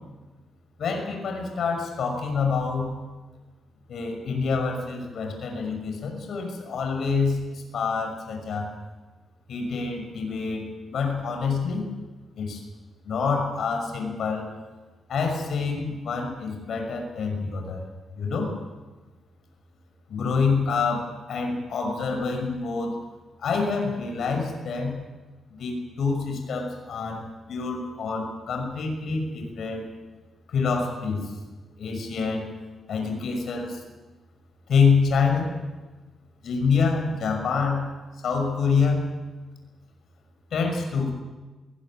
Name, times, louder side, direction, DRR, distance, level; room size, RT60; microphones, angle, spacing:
voice 1, 0.8-2.9 3.9-8.7 9.5-10.6 10.9-11.9 12.4-12.6 13.0-14.5 15.1-17.8 18.2-18.5 20.1-22.9 23.4-24.9 25.6-29.8 30.5-31.3 31.8-32.4 32.9-33.8 34.7-35.5 36.4-37.9 38.2-39.1 40.5-41.1, left 5 dB, 65° left, 3 dB, 6.1 m, -26 dB
21.5 x 18.0 x 8.9 m, 1.3 s
cardioid pair, 135°, 0 cm